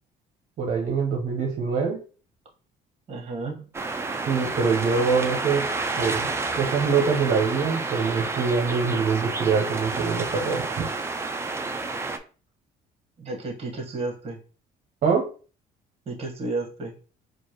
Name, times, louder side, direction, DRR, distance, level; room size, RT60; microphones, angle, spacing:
voice 1, 0.6-2.0 4.3-5.6 6.0-10.9 15.0-15.2, right 5 dB, 55° right, -1 dB, 0.9 m, -24 dB
voice 2, 3.1-3.7 13.2-14.4 16.0-16.9, right 3 dB, 35° right, 1 dB, 1.4 m, -32 dB
sound 1, 3.7-12.2, right 3 dB, 15° right, 0.4 m, -30 dB
4.5 x 2.5 x 3.0 m, 0.38 s
cardioid pair, 110°, 17 cm